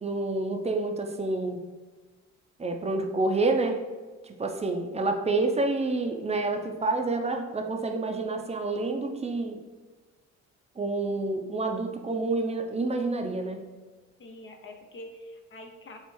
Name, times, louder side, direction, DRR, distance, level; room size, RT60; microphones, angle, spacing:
voice 1, 0.0-1.6 2.6-3.8 4.2-9.6 10.8-13.7, right 2 dB, 20° right, 4 dB, 0.5 m, -28 dB
voice 2, 14.2-16.0, left 1 dB, 40° left, 3 dB, 0.5 m, -45 dB
5.4 x 2.4 x 3.1 m, 1.3 s
cardioid pair, 90°, 30 cm